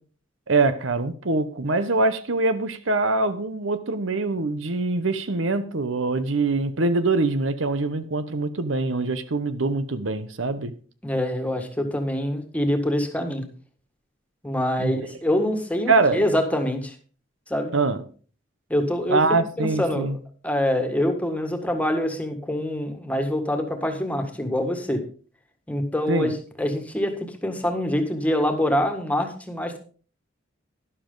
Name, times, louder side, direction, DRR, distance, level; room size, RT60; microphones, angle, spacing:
voice 1, 0.5-10.7 14.8-15.0 15.9-16.2 17.7-18.0 19.1-20.2 26.1-26.3, right 3 dB, 80° right, 1.0 m, -23 dB
voice 2, 11.0-13.4 14.4-17.0 17.5-17.7 18.7-19.2 19.6-20.2 20.4-25.0 25.7-29.8, left 1 dB, 10° left, 1.8 m, -25 dB
12.5 x 11.0 x 3.9 m
head